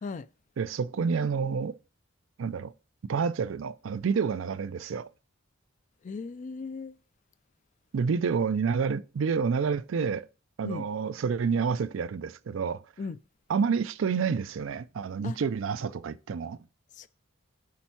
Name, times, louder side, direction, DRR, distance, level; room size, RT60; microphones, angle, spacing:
voice 1, 0.6-1.8 2.4-2.7 3.0-5.1 7.9-10.3 10.6-12.8 13.5-16.6, right 5 dB, 75° right, 0.4 m, -29 dB
voice 2, 6.0-6.9 10.6-10.9 13.0-13.2 15.2-15.4 17.0-17.1, left 4 dB, 40° left, 0.3 m, -37 dB
8.5 x 3.5 x 4.5 m
head